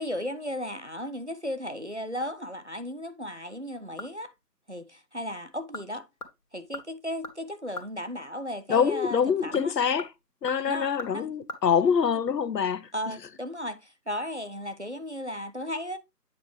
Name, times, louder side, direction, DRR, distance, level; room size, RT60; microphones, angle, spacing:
voice 1, 0.0-4.3 4.7-6.0 6.5-9.7 10.7-11.3 12.9-16.0, equal, 45° right, 0.5 m, -35 dB
sound 1, 3.5-4.4 4.7-4.8 5.5-5.9 6.2-8.0 9.3-11.6 11.9-12.0, left 1 dB, 60° left, 1.7 m, -42 dB
voice 2, 8.7-10.1 10.4-12.9, left 7 dB, 75° left, 0.7 m, -25 dB
8.5 x 4.5 x 3.4 m
figure-of-eight pair, 170°, 50 cm